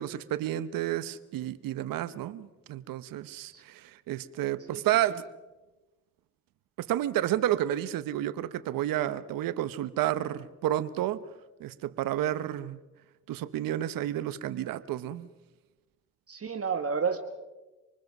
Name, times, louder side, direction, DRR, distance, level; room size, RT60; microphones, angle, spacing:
voice 1, 0.0-5.2 6.8-11.2 11.6-12.8 13.3-15.3, right 13 dB, 85° right, 15 dB, 0.9 m, -31 dB
voice 2, 16.3-17.2, right 6 dB, 45° right, 6 dB, 1.7 m, -30 dB
26.5 x 20.0 x 6.1 m, 1.1 s
supercardioid pair, 50°, 33 cm